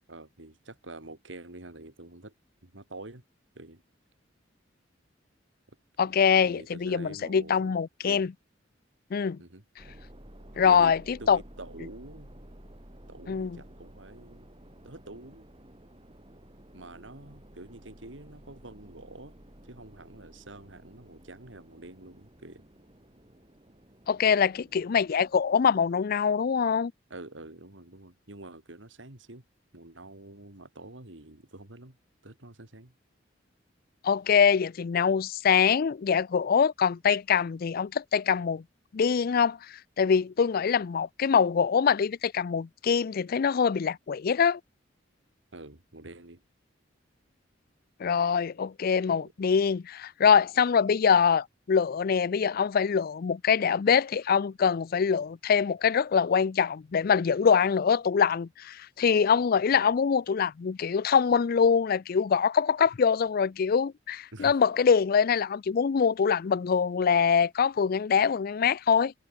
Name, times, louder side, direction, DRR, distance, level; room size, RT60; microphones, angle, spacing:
voice 1, 0.1-2.3 2.6-3.2 3.5-3.8 6.4-7.7 8.0-8.3 9.4-10.0 10.6-10.9 11.2-12.4 13.1-14.5 14.8-15.5 16.7-19.4 19.6-22.7 27.1-29.4 29.7-32.0 32.2-32.9 45.5-46.4 49.1-49.3 59.7-59.9 64.3-64.6, right 2 dB, 80° right, 3.1 m, -46 dB
voice 2, 6.0-8.3 9.1-9.4 10.6-11.4 13.3-13.6 24.1-26.9 34.0-38.6 38.9-44.6 48.0-69.1, left 6 dB, 50° left, 0.4 m, -24 dB
sound 1, 9.8-26.2, equal, 30° right, 4.5 m, -52 dB
head